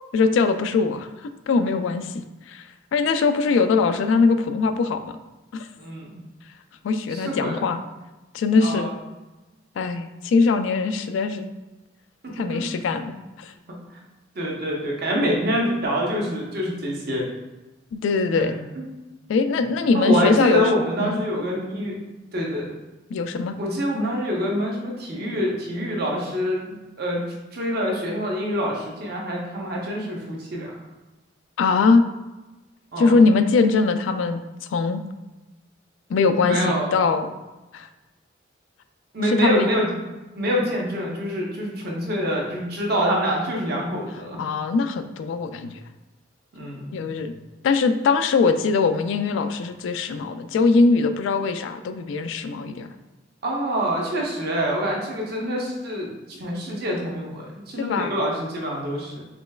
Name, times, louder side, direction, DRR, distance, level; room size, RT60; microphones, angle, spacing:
voice 1, 0.1-1.1 1.5-2.1 2.5-2.6 2.9-5.2 5.5-5.6 6.8-7.8 8.3-8.9 9.8-11.5 12.4-13.5 17.9-18.5 19.3-20.7 21.0-21.2 23.1-23.5 31.6-32.0 33.0-34.4 34.7-35.0 36.1-37.3 37.7-37.9 39.2-39.7 44.4-45.7 46.9-47.3 47.6-52.9 57.8-58.1, left 4 dB, 80° left, 9 dB, 0.3 m, -21 dB
voice 2, 5.8-6.1 7.1-7.6 8.6-8.9 12.2-12.6 14.4-17.2 18.4-18.8 19.9-22.0 22.3-22.7 23.6-27.2 27.5-30.7 32.9-33.2 36.4-36.9 39.1-39.9 40.4-44.4 46.5-47.0 53.4-59.2, equal, 55° right, -2 dB, 0.8 m, -26 dB
5.0 x 3.1 x 2.3 m, 1.1 s
head